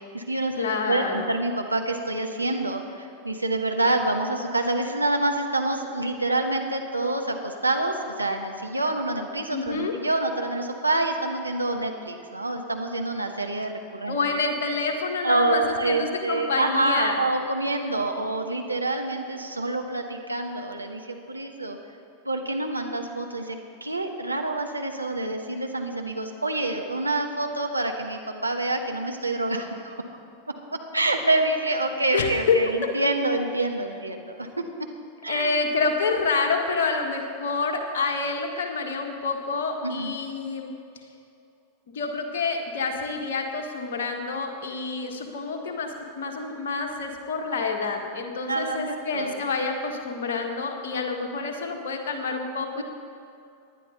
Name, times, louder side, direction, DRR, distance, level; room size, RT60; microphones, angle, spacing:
voice 1, 0.0-14.2 15.2-21.8 22.2-29.9 30.7-34.5 35.2-35.5 39.8-40.1 48.5-49.4 52.8-52.9, right 2 dB, 85° right, 3 dB, 1.2 m, -27 dB
voice 2, 0.5-1.3 9.5-10.0 14.1-17.2 32.1-32.9 35.3-40.7 41.9-52.8, left 4 dB, 60° left, 2 dB, 1.7 m, -28 dB
19.0 x 11.0 x 4.0 m, 2.6 s
figure-of-eight pair, 90°, 0 cm